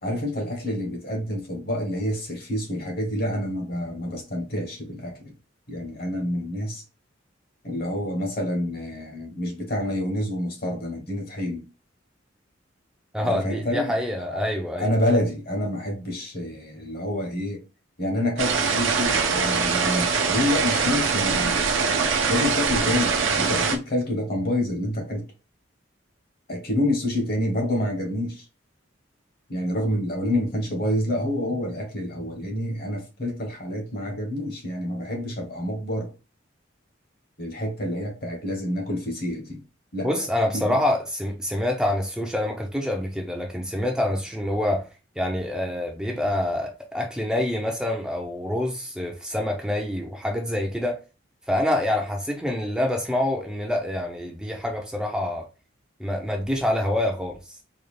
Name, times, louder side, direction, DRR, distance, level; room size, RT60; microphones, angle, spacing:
voice 1, 0.0-5.3 5.7-6.8 7.6-11.6 13.2-14.0 14.3-14.4 14.8-17.6 18.0-21.6 22.3-25.2 26.5-28.4 29.5-36.1 37.4-39.6 39.9-40.1 40.5-40.8, left 1 dB, 55° left, 1.1 m, -28 dB
voice 2, 13.1-14.9 40.0-44.9 45.2-51.0 51.5-55.5 56.0-57.4, left 1 dB, 5° right, 0.4 m, -26 dB
sound 1, 18.4-23.8, right 5 dB, 90° right, 0.7 m, -23 dB
3.9 x 2.3 x 3.2 m
head